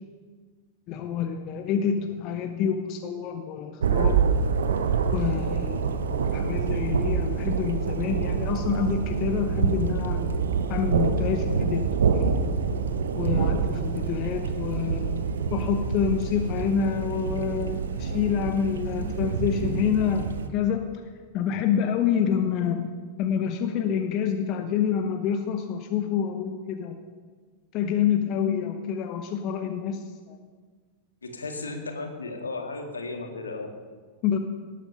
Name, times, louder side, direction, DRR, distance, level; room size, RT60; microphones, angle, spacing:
voice 1, 0.9-4.2 5.1-10.3 10.7-12.5 13.1-15.2 15.5-21.0 21.3-22.9 23.2-27.0 27.7-30.4 34.2-34.4, left 8 dB, 40° left, 5 dB, 1.0 m, -27 dB
Thunder, 3.8-20.5, right 6 dB, 65° right, 0.9 m, -26 dB
voice 2, 31.2-33.7, left 3 dB, 75° left, 3 dB, 2.0 m, -35 dB
18.0 x 8.5 x 5.5 m, 1.5 s
figure-of-eight pair, 90°, 0 cm